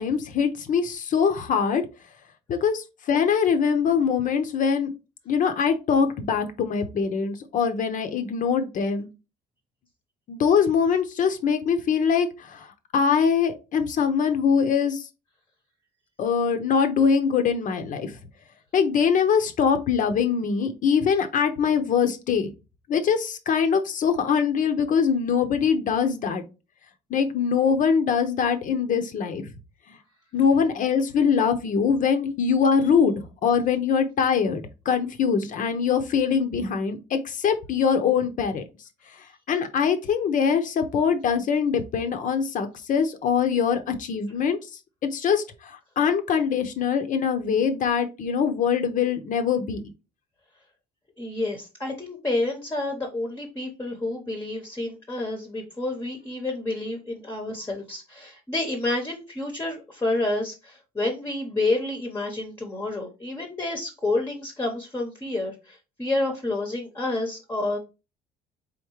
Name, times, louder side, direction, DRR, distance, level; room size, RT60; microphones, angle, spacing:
voice 1, 0.0-1.8 2.5-4.9 5.3-9.1 10.3-15.1 16.2-18.2 18.7-22.5 22.9-26.4 27.1-29.4 30.3-38.6 39.5-44.6 45.0-49.8, left 6 dB, 50° left, 8 dB, 0.6 m, -23 dB
voice 2, 51.2-67.8, left 2 dB, 15° left, 2 dB, 0.8 m, -29 dB
3.7 x 3.6 x 3.0 m, 0.28 s
cardioid pair, 110°, 17 cm